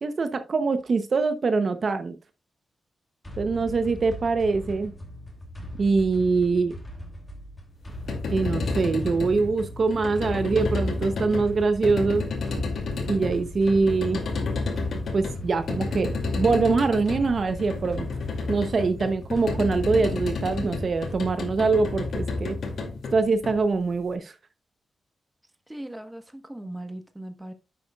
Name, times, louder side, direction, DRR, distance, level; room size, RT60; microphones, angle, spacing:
voice 1, 0.0-2.2 3.4-4.9 5.8-6.7 8.3-12.3 13.1-14.2 15.1-18.1 18.5-22.6 23.1-24.3, right 4 dB, 45° right, 0.8 m, -24 dB
sound 1, 3.2-21.7, equal, 15° left, 2.7 m, -40 dB
sound 2, 7.9-24.0, left 3 dB, 65° left, 2.4 m, -31 dB
voice 2, 25.7-27.5, right 1 dB, 10° right, 1.2 m, -38 dB
10.5 x 7.8 x 2.3 m
wide cardioid pair, 145°, 0 cm